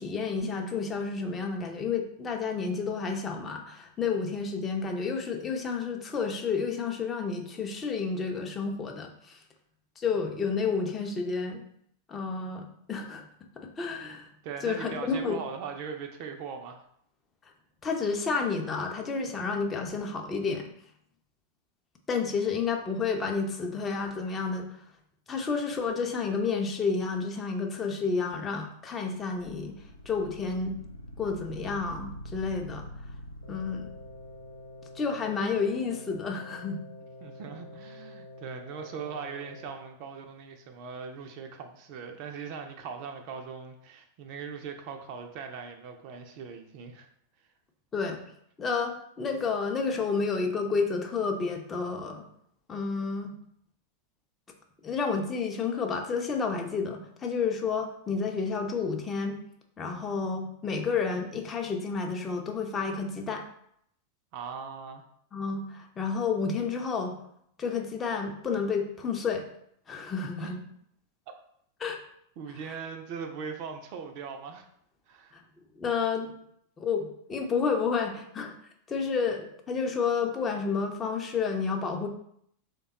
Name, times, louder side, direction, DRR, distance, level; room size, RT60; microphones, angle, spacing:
voice 1, 0.0-9.4 10.0-11.6 12.1-13.2 13.6-14.3 14.6-15.4 17.8-20.7 22.1-24.7 25.3-29.8 30.1-30.7 31.2-32.9 33.5-33.9 35.0-36.8 47.9-48.2 48.6-52.2 52.7-53.3 54.8-59.4 59.8-63.4 65.3-67.2 67.6-69.4 69.9-70.6 71.8-72.0 75.3-75.4 75.8-76.3 76.8-78.5 78.9-82.1, left 5 dB, 20° left, 3 dB, 0.5 m, -30 dB
voice 2, 14.4-16.8 37.2-47.1 64.3-65.0 70.2-70.6 72.4-74.7 75.1-75.4, right 6 dB, 45° right, 5 dB, 0.4 m, -40 dB
sound 1, 29.3-35.5, equal, 90° left, 0.3 m, -45 dB
sound 2, 33.4-39.7, left 1 dB, 65° left, 0.9 m, -47 dB
3.4 x 2.2 x 3.9 m, 0.69 s
figure-of-eight pair, 90°, 0 cm